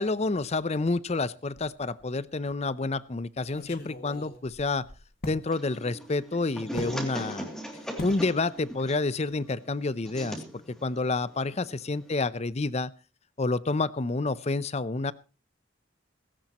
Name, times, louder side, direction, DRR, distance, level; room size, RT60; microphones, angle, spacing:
voice 1, 0.0-4.9 5.3-7.5 8.0-12.9 13.4-15.1, left 3 dB, 35° left, 18 dB, 0.6 m, -29 dB
sound 1, 1.5-2.1 2.5-2.6 3.4-5.5 6.8-7.0 8.0-8.3 8.6-8.9 9.2-9.3, left 1 dB, 50° left, 2.1 m, -40 dB
sound 2, 5.5-12.2, equal, 5° left, 2.6 m, -40 dB
17.5 x 16.5 x 3.0 m, 0.31 s
head